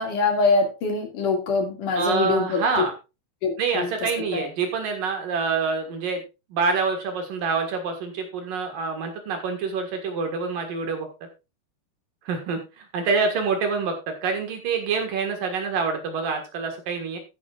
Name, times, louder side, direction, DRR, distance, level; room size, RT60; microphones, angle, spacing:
voice 1, 0.0-2.9 3.4-3.9 4.3-4.4, left 4 dB, 55° left, 3 dB, 3.4 m, -24 dB
voice 2, 2.0-2.9 3.6-6.2 6.5-11.1 12.3-13.9 14.2-17.2, right 5 dB, 60° right, 4 dB, 3.0 m, -26 dB
13.5 x 10.5 x 2.4 m, 0.28 s
omnidirectional pair, 5.0 m